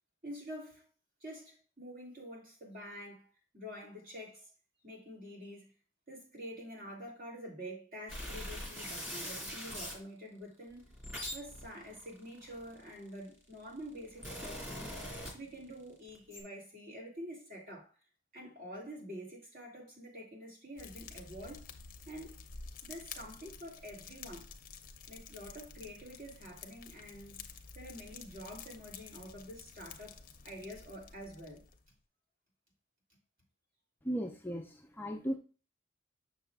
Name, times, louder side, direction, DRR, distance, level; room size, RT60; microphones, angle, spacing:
voice 1, 0.2-0.9 1.2-3.3 3.5-4.5 4.8-5.7 6.1-11.0 11.3-17.9 18.3-21.7 22.1-22.5 22.8-24.5 25.1-30.2 30.4-31.6, equal, 45° right, 2.9 m, -47 dB
sound 1, 8.1-10.0 10.7-13.1 13.8-15.8 16.1-16.4, equal, 10° right, 2.8 m, -42 dB
Fire, 20.8-31.9, left 5 dB, 45° left, 0.7 m, -51 dB
voice 2, 34.0-35.4, equal, 10° left, 0.5 m, -36 dB
6.7 x 6.6 x 2.4 m
head